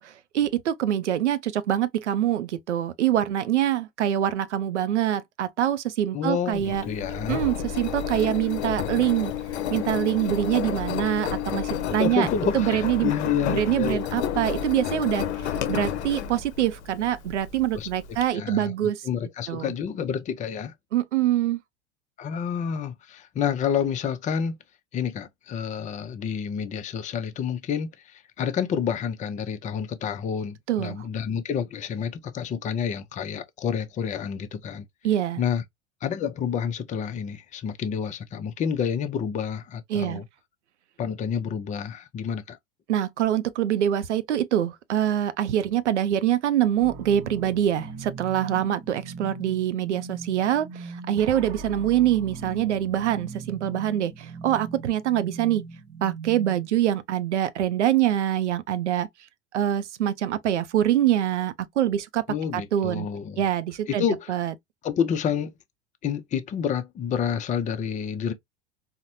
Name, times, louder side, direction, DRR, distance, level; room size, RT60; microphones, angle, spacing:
voice 1, 0.0-6.9 7.3-9.3 9.7-12.3 12.5-13.1 13.5-19.0 19.5-19.7 20.9-21.6 30.7-31.1 35.0-35.4 39.9-40.2 42.9-55.6 56.0-59.1 59.5-62.2 62.5-63.1 63.4-64.5, right 11 dB, 85° right, 0.5 m, -25 dB
voice 2, 6.1-7.4 12.0-14.0 17.7-17.9 18.3-18.7 19.0-20.7 22.2-24.6 24.9-34.8 35.4-35.6 36.0-40.2 41.0-42.6 62.3-63.5 63.9-64.3 64.8-65.5 66.0-68.3, left 7 dB, 20° left, 0.5 m, -29 dB
Engine, 6.5-18.2, left 9 dB, 75° left, 0.6 m, -31 dB
sound 1, 46.8-56.8, right 4 dB, 55° right, 0.9 m, -40 dB
4.1 x 2.1 x 2.6 m
hypercardioid pair, 85°, 34 cm